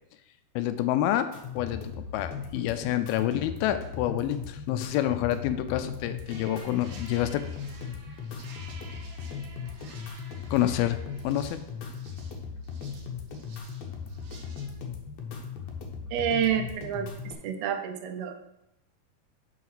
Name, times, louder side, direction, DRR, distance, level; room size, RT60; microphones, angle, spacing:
voice 1, 0.6-1.3 1.6-7.4 10.5-11.0 11.2-11.6, left 12 dB, 80° left, 10 dB, 2.4 m, -28 dB
sound 1, 1.3-17.3, left 6 dB, 65° left, 1.8 m, -38 dB
sound 2, 6.3-14.7, right 3 dB, 60° right, 2.3 m, -51 dB
voice 2, 16.1-18.5, right 8 dB, 80° right, 7 dB, 2.7 m, -29 dB
7.1 x 5.7 x 6.1 m, 0.87 s
omnidirectional pair, 4.4 m